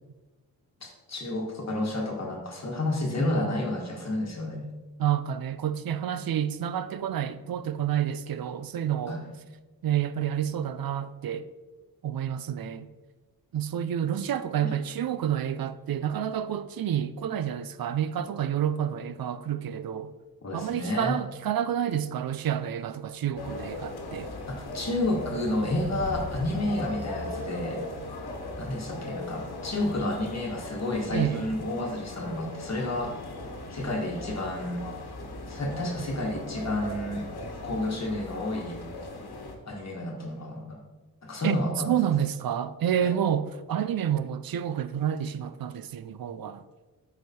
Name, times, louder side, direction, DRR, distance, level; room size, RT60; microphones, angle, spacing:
voice 1, 0.8-4.6 9.1-9.3 14.6-14.7 20.4-21.1 24.5-27.8 28.6-33.1 33.7-34.8 35.5-37.2 37.6-38.8 39.7-40.8 41.2-42.0 43.0-43.1, left 1 dB, 45° left, 1.3 m, -30 dB
voice 2, 5.0-9.2 9.8-11.5 12.0-12.9 13.5-20.1 20.5-24.3 31.1-31.4 41.4-41.6 41.9-46.6, right 9 dB, 70° right, 0.5 m, -29 dB
sound 1, 23.4-39.5, left 2 dB, 90° left, 1.2 m, -38 dB
8.0 x 4.9 x 4.2 m
wide cardioid pair, 100°, 37 cm